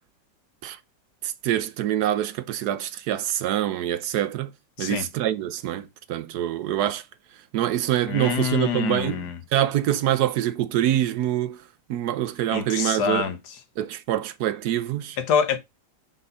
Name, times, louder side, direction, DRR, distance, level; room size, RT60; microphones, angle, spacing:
voice 1, 1.2-4.5 4.8-7.0 7.5-9.3 9.5-11.6 11.9-13.2 13.8-15.2, right 12 dB, 70° right, 1.1 m, -25 dB
voice 2, 8.1-9.4 12.5-13.4 15.2-15.6, left 7 dB, 70° left, 1.5 m, -25 dB
5.6 x 3.9 x 5.3 m
omnidirectional pair, 1.9 m